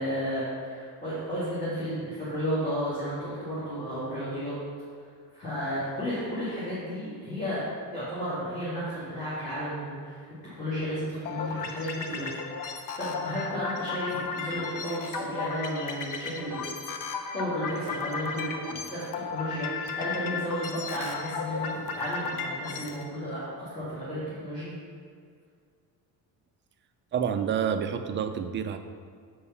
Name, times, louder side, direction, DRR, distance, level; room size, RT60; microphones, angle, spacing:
voice 1, 0.0-4.6 5.3-7.7 7.9-10.2 10.5-12.3 12.6-16.6 17.3-24.8, equal, 20° left, -11 dB, 2.2 m, -33 dB
sound 1, 11.3-23.0, left 5 dB, 50° left, 0.8 m, -35 dB
voice 2, 27.1-28.8, right 8 dB, 30° right, 7 dB, 0.4 m, -28 dB
6.9 x 5.4 x 5.6 m, 2.1 s
cardioid pair, 165°, 41 cm